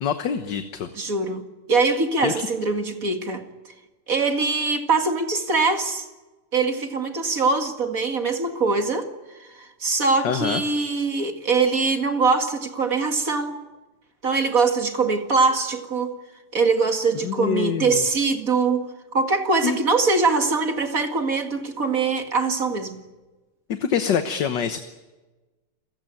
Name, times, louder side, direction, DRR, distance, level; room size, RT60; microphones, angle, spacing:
voice 1, 0.0-0.9 2.2-2.5 10.2-10.6 17.2-18.0 19.6-19.8 23.7-24.8, left 7 dB, 60° left, 8 dB, 1.7 m, -25 dB
voice 2, 0.9-1.4 1.7-3.4 4.1-6.1 6.5-9.1 9.5-13.6 14.2-16.2 16.5-23.0, right 4 dB, 40° right, 6 dB, 2.4 m, -22 dB
28.0 x 16.5 x 9.1 m, 1.2 s
omnidirectional pair, 2.4 m